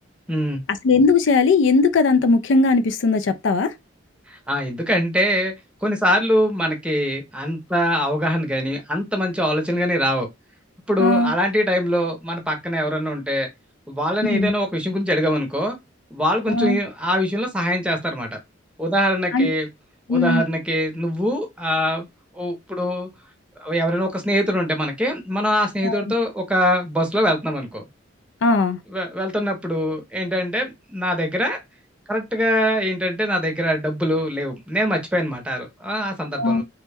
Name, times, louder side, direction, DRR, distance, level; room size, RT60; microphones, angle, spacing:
voice 1, 0.3-0.6 4.3-5.5 5.8-10.3 10.9-13.5 13.9-15.8 16.1-18.4 18.8-19.7 20.1-22.1 22.3-23.1 23.6-27.8 28.9-31.6 32.1-36.6, equal, 5° right, 0.7 m, -23 dB
voice 2, 0.8-3.7 11.0-11.3 14.3-14.5 16.5-16.8 19.3-19.5 20.1-20.4 25.8-26.0 28.4-28.8 36.4-36.6, left 3 dB, 70° left, 0.4 m, -18 dB
3.0 x 2.2 x 3.3 m
head